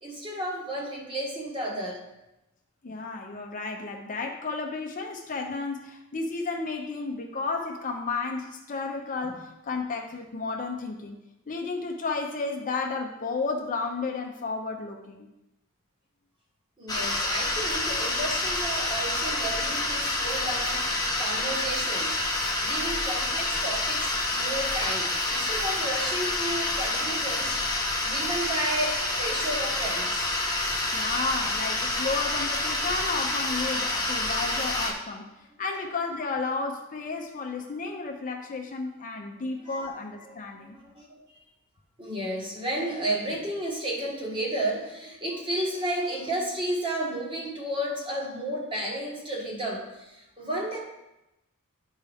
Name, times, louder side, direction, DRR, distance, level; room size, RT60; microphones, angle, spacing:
voice 1, 0.0-2.0 9.2-9.4 16.8-22.2 22.6-30.4 34.4-34.6 39.3-39.9 40.2-41.2 42.0-50.8, right 1 dB, 25° right, -2 dB, 1.4 m, -32 dB
voice 2, 2.8-11.2 11.5-15.3 30.9-35.3 35.6-40.8, left 4 dB, 35° left, 2 dB, 0.6 m, -32 dB
sound 1, 16.9-34.9, left 2 dB, 15° left, 1.0 m, -28 dB
10.5 x 4.6 x 3.5 m, 0.94 s
head